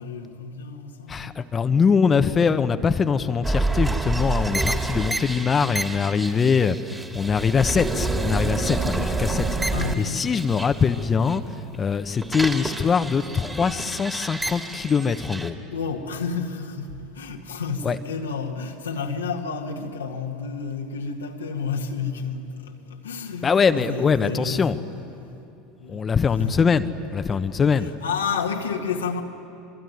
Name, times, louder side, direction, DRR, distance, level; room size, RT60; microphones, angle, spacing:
voice 1, 0.0-1.4 9.7-10.3 15.7-25.4 25.8-26.6 27.3-27.4 27.8-29.2, left 5 dB, 90° left, 1.8 m, -31 dB
voice 2, 1.1-6.8 7.1-9.5 10.0-11.4 11.8-15.6 17.8-18.0 23.4-24.8 25.9-26.8 27.1-27.9, left 6 dB, 30° left, 1.1 m, -22 dB
sound 1, 3.4-11.4 11.7-15.5, right 2 dB, 15° right, 3.0 m, -28 dB
26.0 x 23.0 x 9.5 m
hypercardioid pair, 80°, 0 cm